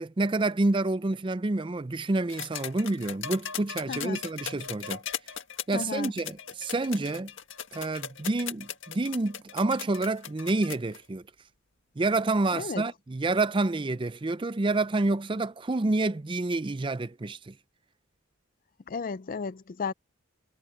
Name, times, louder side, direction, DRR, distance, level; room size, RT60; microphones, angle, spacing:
voice 1, 0.0-5.0 5.7-7.3 7.7-11.2 12.0-17.5, right 2 dB, 25° right, 0.5 m, -28 dB
sound 1, 2.3-11.0 12.2-12.3, left 8 dB, 60° left, 1.8 m, -38 dB
voice 2, 3.9-4.2 5.7-6.1 12.5-12.8 18.9-19.9, left 5 dB, 40° left, 0.4 m, -33 dB
head